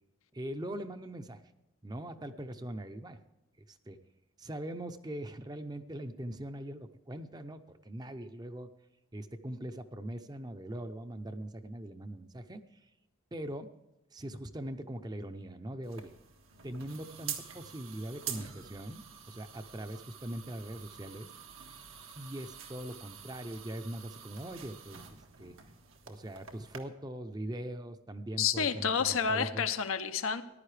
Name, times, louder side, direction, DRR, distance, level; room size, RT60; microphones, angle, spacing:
voice 1, 0.3-1.4 1.8-3.2 3.7-4.0 4.4-8.7 9.1-12.8 13.3-13.7 14.1-16.1 16.6-21.3 22.1-25.0 25.4-25.6 26.1-29.7, right 1 dB, 20° right, 9 dB, 0.6 m, -41 dB
sound 1, 15.8-26.8, right 8 dB, 85° right, 1.5 m, -47 dB
voice 2, 28.4-30.4, left 6 dB, 85° left, 9 dB, 0.8 m, -29 dB
14.5 x 11.0 x 3.3 m, 0.99 s
head